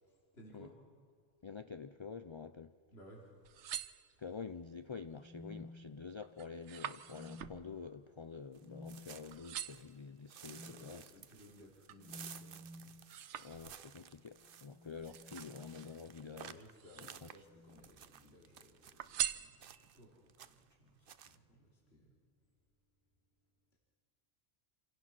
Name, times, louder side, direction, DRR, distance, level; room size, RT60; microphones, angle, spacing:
voice 1, 0.0-0.8 2.9-3.3 10.4-12.9 13.5-13.8 16.4-22.5 23.7-23.8, equal, 65° left, -3 dB, 3.4 m, -60 dB
voice 2, 1.4-2.7 4.2-11.1 13.4-16.6 17.2-17.3, left 5 dB, 40° left, 10 dB, 0.4 m, -48 dB
sound 1, 3.3-4.6 5.1-5.6 5.9-9.0 9.3-10.0 10.6-12.1 12.5-14.1 15.0-16.1 16.7-17.5 17.8-18.5 19.0-20.1 20.6-20.7, right 10 dB, 90° right, 1.0 m, -45 dB
sound 2, 5.1-6.4 7.0-7.8 8.6-9.1 10.5-10.8 12.0-13.0 14.5-16.3 17.4-17.9 19.1-19.4, left 1 dB, 5° right, 2.2 m, -54 dB
sound 3, 8.5-9.9 10.3-19.1 19.6-20.0 20.3-20.7 21.1-21.4, right 8 dB, 55° right, 0.8 m, -55 dB
27.0 x 17.0 x 6.0 m, 2.2 s
omnidirectional pair, 1.1 m